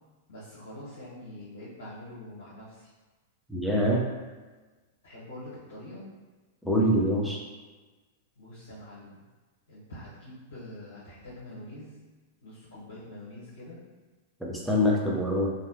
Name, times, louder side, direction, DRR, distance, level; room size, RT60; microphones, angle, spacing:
voice 1, 0.3-2.9 5.0-6.0 8.4-9.2 9.7-11.9 12.4-13.8, left 1 dB, 80° left, -11 dB, 1.0 m, -45 dB
voice 2, 3.5-4.0 6.6-7.4 14.4-15.5, equal, ahead, -4 dB, 0.7 m, -25 dB
3.2 x 2.2 x 2.8 m, 1.3 s
hypercardioid pair, 105°, 0 cm